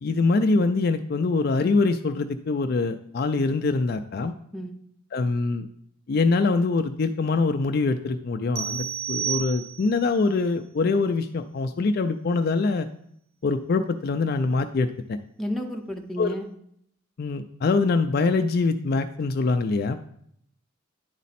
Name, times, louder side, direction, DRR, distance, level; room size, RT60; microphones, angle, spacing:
voice 1, 0.0-4.3 5.1-5.7 6.1-12.9 13.4-15.2 16.2-16.4 17.2-20.0, left 3 dB, 45° left, 8 dB, 0.3 m, -24 dB
sound 1, 8.6-10.1, right 9 dB, 80° right, 0.5 m, -31 dB
voice 2, 15.4-16.5, equal, ahead, 1 dB, 0.6 m, -31 dB
10.0 x 4.1 x 4.2 m, 0.69 s
head